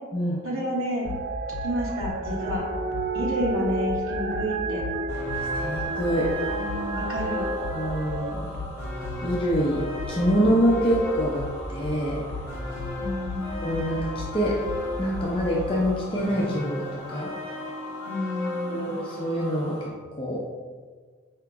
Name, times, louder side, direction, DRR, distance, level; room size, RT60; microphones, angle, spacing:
voice 1, 0.4-1.1 1.6-2.6 3.1-4.8 6.5-7.5 13.0-13.7 18.0-19.0, equal, 85° right, -4 dB, 1.1 m, -30 dB
sound 1, 1.0-15.8, left 3 dB, 85° left, 0.4 m, -37 dB
sound 2, 1.0-8.3, right 3 dB, 50° right, 0.3 m, -31 dB
sound 3, 5.1-19.9, left 2 dB, 15° right, 1.4 m, -36 dB
voice 2, 5.5-6.3 7.7-8.6 9.2-11.4 11.7-12.3 13.6-14.0 14.3-14.6 15.0-17.3 18.7-20.4, equal, 25° left, -5 dB, 0.5 m, -25 dB
4.9 x 2.8 x 3.5 m, 1.5 s
head